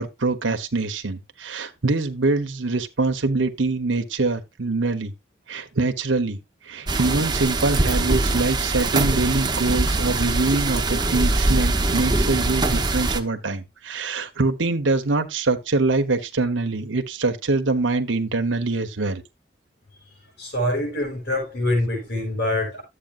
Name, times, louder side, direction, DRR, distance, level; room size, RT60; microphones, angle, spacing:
voice 1, 0.0-5.1 5.5-6.4 6.6-19.2, right 3 dB, 90° right, 1.1 m, -24 dB
sound 1, 6.9-13.2, right 2 dB, 20° right, 0.9 m, -22 dB
voice 2, 20.4-22.8, left 1 dB, 60° left, 5.4 m, -25 dB
12.0 x 8.3 x 2.5 m
head